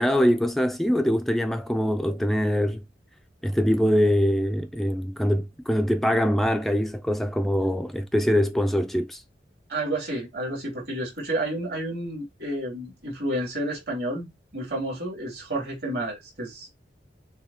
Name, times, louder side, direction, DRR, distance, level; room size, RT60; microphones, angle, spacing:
voice 1, 0.0-2.8 3.4-9.2, equal, ahead, 0.3 m, -23 dB
voice 2, 9.7-14.3 14.5-16.7, right 1 dB, 65° right, 3.0 m, -30 dB
6.7 x 2.8 x 2.8 m
head